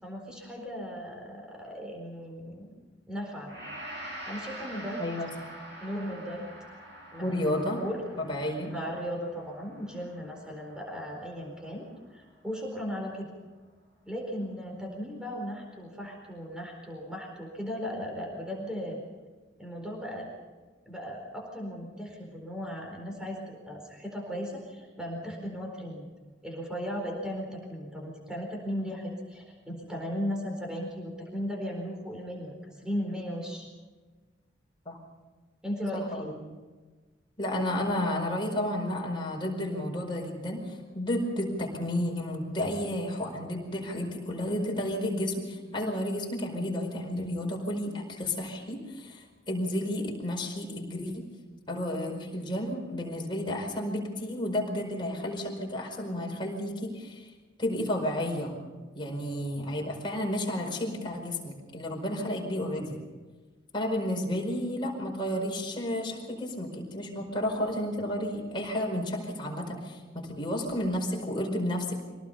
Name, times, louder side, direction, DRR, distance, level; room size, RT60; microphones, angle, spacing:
voice 1, 0.0-2.7 3.1-3.5 4.3-5.0 5.8-6.5 7.1-7.4 7.8-8.0 8.7-11.9 12.1-13.3 14.1-19.0 19.6-20.3 20.9-26.1 26.4-33.7 35.6-36.3, equal, 5° right, 0 dB, 4.3 m, -36 dB
Gong, 3.5-12.7, right 1 dB, 60° right, 7.3 m, -46 dB
voice 2, 5.0-5.5 7.2-7.8 8.2-8.7 34.8-35.0 35.9-36.3 37.4-51.2 51.7-57.3 57.6-58.6 58.9-63.0 63.7-71.9, left 1 dB, 25° left, -1 dB, 4.9 m, -32 dB
25.5 x 18.5 x 5.6 m, 1.4 s
head